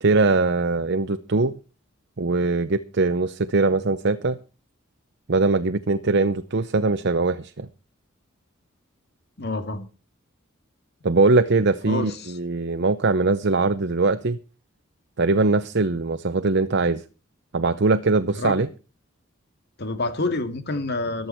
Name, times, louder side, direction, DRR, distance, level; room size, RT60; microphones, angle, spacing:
voice 1, 0.0-1.5 2.2-4.4 5.3-7.7 11.0-14.4 15.2-17.0 17.5-18.7, right 3 dB, 60° right, 0.8 m, -21 dB
voice 2, 9.4-9.9 11.9-12.4 18.3-18.6 19.8-21.3, left 2 dB, 55° left, 2.3 m, -28 dB
14.5 x 12.0 x 4.5 m
head